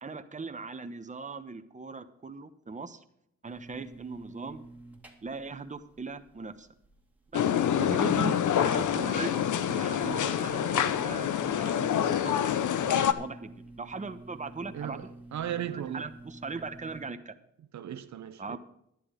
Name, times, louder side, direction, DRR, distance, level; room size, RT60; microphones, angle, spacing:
voice 1, 0.0-3.0 3.4-4.6 5.2-6.7 7.3-7.5 7.8-9.4 9.7-11.3 11.6-12.3 12.7-15.1 15.7-17.3 18.4-18.6, right 4 dB, 25° right, 1.0 m, -39 dB
sound 1, 3.4-17.1, right 2 dB, 5° right, 2.2 m, -50 dB
sound 2, 7.3-13.1, left 9 dB, 80° left, 0.8 m, -26 dB
voice 2, 14.7-16.1 17.7-18.6, right 10 dB, 70° right, 0.7 m, -36 dB
11.0 x 11.0 x 5.0 m
cardioid pair, 95°, 30 cm